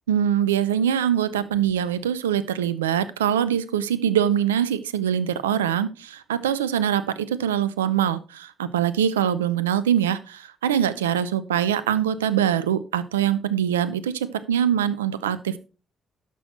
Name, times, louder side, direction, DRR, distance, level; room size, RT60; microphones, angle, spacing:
voice 1, 0.1-15.6, right 9 dB, 90° right, 15 dB, 0.5 m, -23 dB
12.0 x 6.2 x 4.3 m, 0.32 s
hypercardioid pair, 45°, 0 cm